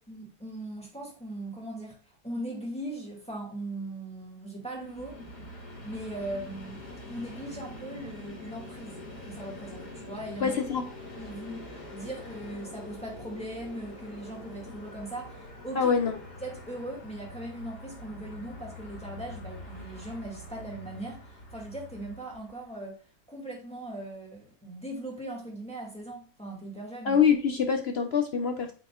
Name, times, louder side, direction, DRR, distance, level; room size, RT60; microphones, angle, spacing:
voice 1, 0.1-2.0 2.2-5.2 5.8-10.6 11.2-15.9 16.4-23.0 23.3-27.2, right 1 dB, 5° left, -2 dB, 2.0 m, -39 dB
Train, 4.7-22.8, left 1 dB, 85° left, 3.5 m, -45 dB
voice 2, 10.4-10.8 15.7-16.2 27.0-28.7, left 7 dB, 50° left, 6 dB, 0.8 m, -25 dB
8.6 x 5.2 x 2.4 m, 0.37 s
omnidirectional pair, 1.7 m